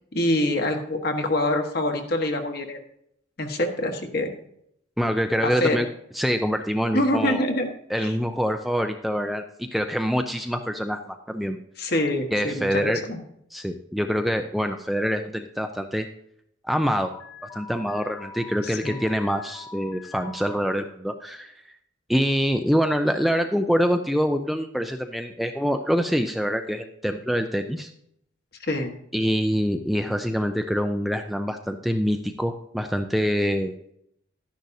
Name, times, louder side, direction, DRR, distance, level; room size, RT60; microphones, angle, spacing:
voice 1, 0.1-2.8 3.4-4.3 5.4-5.8 6.9-7.7 8.0-8.1 11.8-12.7 13.0-13.2 18.6-19.0 28.6-28.9, left 1 dB, 55° left, 4 dB, 1.4 m, -25 dB
voice 2, 5.0-5.9 6.1-7.4 7.9-11.6 12.3-13.0 13.5-16.1 16.6-17.1 17.5-21.5 22.1-27.9 29.1-33.7, equal, ahead, 6 dB, 0.4 m, -25 dB
Alarm, 17.1-20.6, left 5 dB, 25° left, 1.4 m, -43 dB
12.0 x 10.5 x 2.7 m, 0.73 s
head